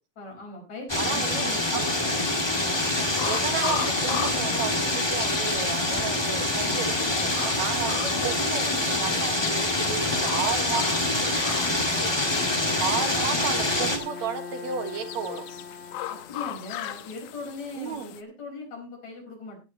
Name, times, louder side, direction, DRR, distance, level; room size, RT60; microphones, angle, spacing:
voice 1, 0.2-1.9 11.5-11.8 16.1-19.6, left 3 dB, 70° left, 0 dB, 6.3 m, -39 dB
sound 1, 0.9-14.0, left 1 dB, 10° left, 1.3 m, -26 dB
voice 2, 1.0-1.8 3.2-11.0 12.8-15.4 17.8-18.1, right 6 dB, 70° right, 6 dB, 2.8 m, -33 dB
sound 2, 1.9-18.2, left 12 dB, 90° left, 2.4 m, -38 dB
Bowed string instrument, 12.2-16.8, left 4 dB, 30° right, 1.4 m, -41 dB
17.0 x 9.7 x 3.0 m, 0.30 s
omnidirectional pair, 3.4 m